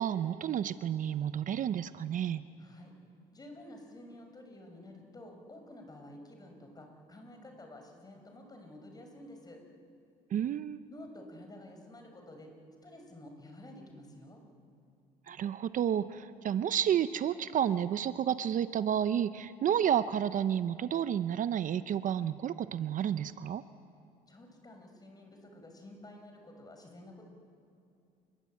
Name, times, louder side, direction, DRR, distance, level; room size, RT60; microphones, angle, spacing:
voice 1, 0.0-2.5 10.3-10.8 15.3-23.6, right 9 dB, 50° right, 13 dB, 0.7 m, -31 dB
voice 2, 2.6-2.9 3.3-9.6 10.9-12.5 12.8-14.4 24.3-27.3, left 1 dB, 25° left, 4 dB, 5.3 m, -51 dB
28.5 x 22.0 x 8.5 m, 2.6 s
cardioid pair, 110°, 17 cm